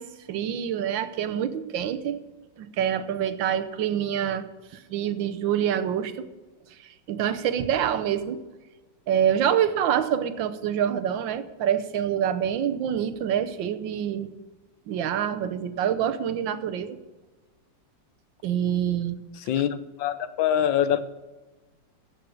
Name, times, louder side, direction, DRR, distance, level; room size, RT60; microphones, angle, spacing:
voice 1, 0.0-2.2 2.6-4.5 4.7-6.1 6.8-8.4 9.1-14.3 14.9-17.0 18.4-19.2, right 9 dB, 85° right, 12 dB, 1.6 m, -26 dB
voice 2, 19.4-21.0, left 10 dB, 90° left, 13 dB, 1.5 m, -24 dB
15.5 x 6.5 x 7.1 m, 1.2 s
omnidirectional pair, 2.0 m